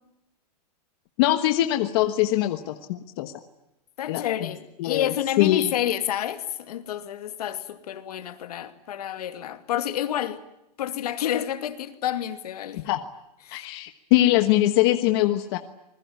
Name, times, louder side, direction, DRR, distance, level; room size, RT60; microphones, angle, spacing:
voice 1, 1.2-3.3 4.1-4.2 4.8-5.1 5.4-5.7 12.8-13.0 13.5-15.6, left 14 dB, 40° left, 1.3 m, -22 dB
voice 2, 4.0-10.4 10.8-12.8 13.4-13.6, left 11 dB, 70° left, 2.6 m, -29 dB
27.0 x 21.0 x 9.5 m
supercardioid pair, 170°, 21 cm